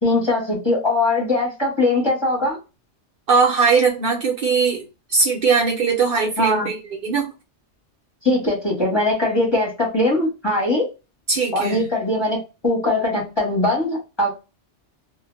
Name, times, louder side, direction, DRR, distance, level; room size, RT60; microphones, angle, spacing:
voice 1, 0.0-2.6 6.4-6.7 8.2-10.9 11.5-12.4 12.6-14.3, left 2 dB, 25° left, -2 dB, 0.8 m, -21 dB
voice 2, 3.3-4.8 5.1-7.2 11.3-11.9, right 5 dB, 55° right, 0 dB, 0.8 m, -19 dB
2.1 x 2.1 x 3.0 m, 0.29 s
omnidirectional pair, 1.2 m